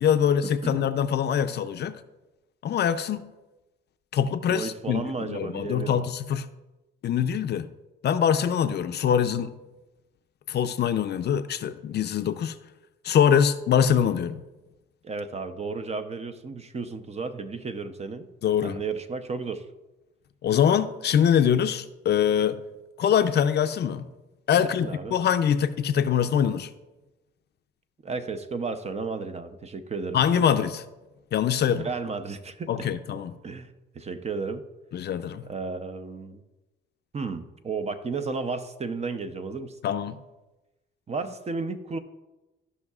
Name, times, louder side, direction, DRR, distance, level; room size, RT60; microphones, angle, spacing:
voice 1, 0.0-2.0 2.6-3.3 4.1-6.5 7.0-7.7 8.0-9.5 10.5-12.6 13.0-14.4 18.4-18.8 20.4-22.6 23.0-24.1 24.5-26.7 30.1-30.8 31.3-31.9 32.7-33.4 34.9-35.5 39.8-40.2, left 8 dB, 55° left, 10 dB, 0.5 m, -24 dB
voice 2, 4.5-6.0 15.0-18.3 18.6-19.7 24.6-25.2 28.0-30.2 31.8-32.9 33.4-34.6 35.5-36.4 37.1-39.8 41.1-42.0, right 4 dB, 35° right, 9 dB, 0.7 m, -33 dB
14.5 x 5.5 x 2.4 m, 1.0 s
cardioid pair, 90°, 20 cm